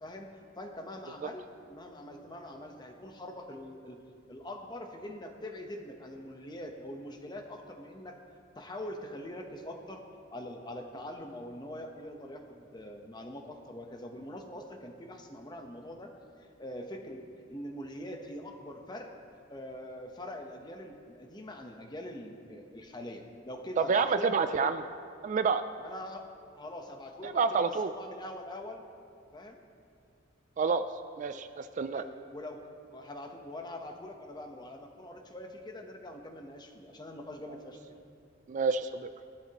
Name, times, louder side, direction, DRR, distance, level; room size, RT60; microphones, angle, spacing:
voice 1, 0.0-4.0 4.3-8.2 8.6-10.0 10.3-16.1 16.4-19.1 19.5-24.7 25.8-28.8 29.3-29.6 31.3-31.4 31.9-32.6 32.9-38.0, left 1 dB, 20° left, 3 dB, 1.0 m, -43 dB
voice 2, 23.8-24.8 25.2-25.6 27.2-27.9 30.6-30.8 31.2-32.0 38.5-39.1, right 5 dB, 40° right, 10 dB, 0.3 m, -28 dB
17.0 x 12.0 x 3.0 m, 2.4 s
head